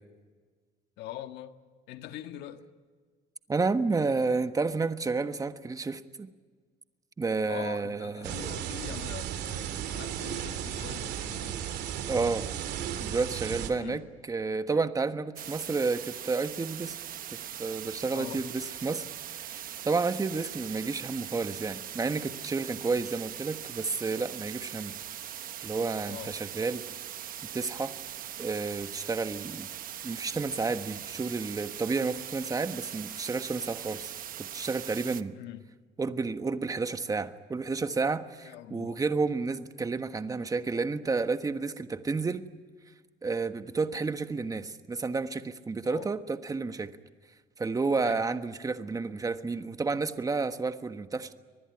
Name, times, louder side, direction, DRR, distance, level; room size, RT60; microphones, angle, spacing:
voice 1, 1.0-1.6 1.9-2.6 7.5-11.6 13.7-14.1 18.1-18.4 22.9-23.0 26.1-26.3 35.3-35.7 38.4-39.0 45.8-46.1 48.0-48.2, left 12 dB, 85° left, 1.7 m, -43 dB
voice 2, 3.5-6.3 7.2-8.5 12.1-12.5 13.0-14.0 14.3-16.9 17.3-24.9 25.6-26.8 27.4-27.9 28.4-29.7 30.0-34.1 34.4-35.4 36.0-42.5 43.2-46.9 47.6-51.3, right 4 dB, 20° right, 1.3 m, -31 dB
sound 1, 8.2-13.7, right 9 dB, 80° right, 2.8 m, -35 dB
sound 2, 15.4-35.2, right 10 dB, 55° right, 1.0 m, -41 dB
25.0 x 20.0 x 9.8 m
cardioid pair, 110°, 17 cm